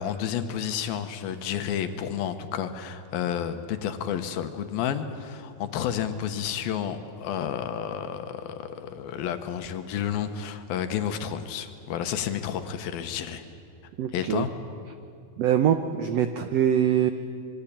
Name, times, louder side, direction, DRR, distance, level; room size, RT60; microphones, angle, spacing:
voice 1, 0.0-13.4 14.1-14.5, left 9 dB, 80° left, 8 dB, 3.0 m, -31 dB
voice 2, 14.0-14.5 15.4-17.1, right 9 dB, 85° right, 8 dB, 1.4 m, -23 dB
26.0 x 23.5 x 8.6 m, 2.5 s
omnidirectional pair, 4.2 m